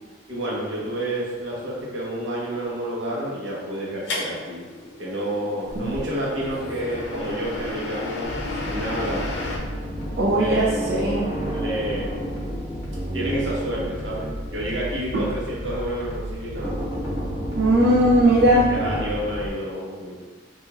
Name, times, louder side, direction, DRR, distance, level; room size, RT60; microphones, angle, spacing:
voice 1, 0.3-4.6 5.0-9.3 10.3-10.7 11.5-12.3 13.1-16.9 18.7-20.1, right 1 dB, 90° right, -6 dB, 1.0 m, -29 dB
sound 1, 4.1-9.6, left 2 dB, 70° left, 0.6 m, -33 dB
sound 2, 5.7-7.7 8.4-8.5 8.8-15.2 16.6-19.1, equal, 30° right, 1.2 m, -32 dB
sound 3, 8.2-19.5, equal, 40° left, 0.8 m, -34 dB
voice 2, 10.2-11.3 15.1-15.2 17.6-18.7, right 1 dB, 60° right, -6 dB, 0.4 m, -19 dB
2.9 x 2.6 x 3.5 m, 1.5 s
head